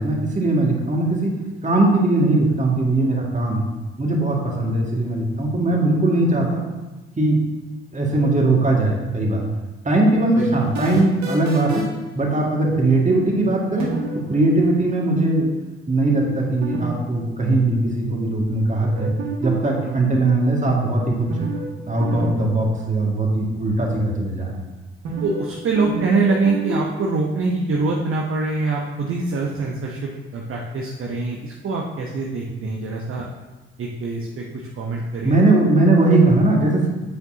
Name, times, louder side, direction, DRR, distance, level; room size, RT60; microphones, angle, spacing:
voice 1, 0.0-1.3 1.6-3.6 4.0-6.6 7.2-7.4 7.9-9.4 9.8-11.8 12.2-13.9 14.3-15.5 15.9-19.1 19.4-21.3 21.9-24.6 32.5-32.6 35.2-36.9, right 2 dB, 20° right, -1 dB, 2.1 m, -19 dB
sound 1, 10.4-12.0 13.8-14.2 16.6-16.9 17.1-17.2 19.0-19.8 21.3-21.7 22.0-22.3 22.5-22.6 25.0-25.5 25.8-26.8, right 4 dB, 55° right, 1.8 m, -28 dB
voice 2, 25.2-33.3 33.8-35.4, right 3 dB, 40° right, -1 dB, 1.0 m, -24 dB
8.1 x 6.8 x 2.8 m, 1.1 s
figure-of-eight pair, 40°, 32 cm